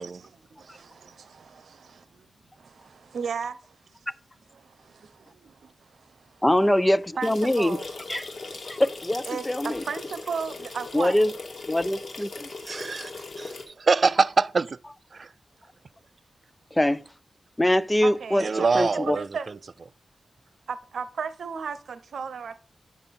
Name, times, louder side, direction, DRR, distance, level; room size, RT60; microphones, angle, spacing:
voice 1, 0.0-2.3 2.6-4.0 4.5-6.4 7.2-7.9 8.6-8.8 9.3-11.2 18.0-19.6 20.7-22.6, right 6 dB, 85° right, 0.8 m, -36 dB
voice 2, 6.4-7.8 8.1-8.3 8.7-9.8 10.9-11.3 11.7-12.5 16.7-17.0 17.6-18.4 18.7-19.2, left 1 dB, 10° left, 0.5 m, -23 dB
sound 1, 7.2-13.6, left 3 dB, 65° left, 2.3 m, -39 dB
voice 3, 12.6-14.8 15.1-15.3 18.4-19.3, right 4 dB, 50° right, 0.3 m, -25 dB
8.8 x 6.5 x 4.2 m
wide cardioid pair, 95°, 0 cm